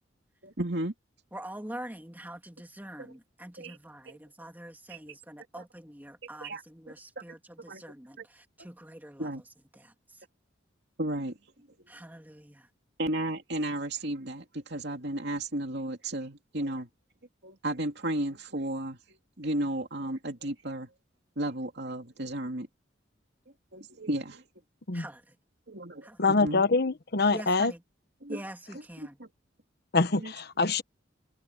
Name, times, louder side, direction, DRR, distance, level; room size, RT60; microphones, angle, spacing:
voice 1, 0.4-0.9 3.0-3.1 3.6-3.8 4.1-4.2 4.9-5.0 5.6-5.7 6.4-6.6 7.2-7.3 7.7-7.8 8.2-8.3 9.2-9.4 11.0-11.4 13.0-16.9 17.4-20.9 21.4-22.7 23.7-24.4 25.7-26.6 28.2-28.4 29.0-29.3 30.1-30.3, right 1 dB, 60° right, 2.9 m, -34 dB
voice 2, 1.3-9.3 9.7-10.2 11.9-12.7 24.9-25.4 26.0-26.2 27.3-27.8 28.3-29.2, right 1 dB, 10° right, 2.3 m, -45 dB
voice 3, 26.2-27.7 29.9-30.8, left 3 dB, 55° left, 1.1 m, -25 dB
head